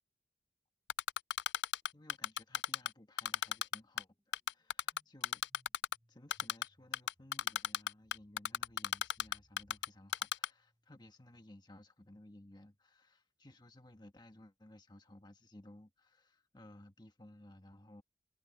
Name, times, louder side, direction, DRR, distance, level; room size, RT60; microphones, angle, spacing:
Typing, 0.9-2.9 3.2-4.0 4.3-5.9 6.3-6.7 6.9-9.9 10.1-10.5, left 10 dB, 75° left, 0.4 m, -34 dB
voice 1, 1.9-5.4 6.1-18.0, left 1 dB, 25° left, 1.5 m, -58 dB
sound 1, 3.0-11.2, equal, 20° right, 6.9 m, -74 dB
head